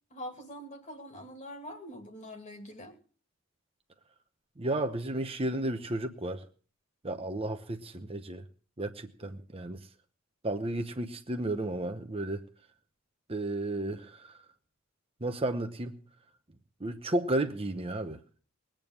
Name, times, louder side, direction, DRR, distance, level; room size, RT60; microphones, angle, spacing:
voice 1, 0.1-2.9, equal, 35° left, 2.6 m, -44 dB
voice 2, 4.6-6.4 7.0-8.4 8.8-9.8 10.4-12.4 13.3-14.3 15.2-16.0 16.8-18.4, right 1 dB, 25° right, 0.9 m, -33 dB
20.5 x 9.0 x 6.3 m
head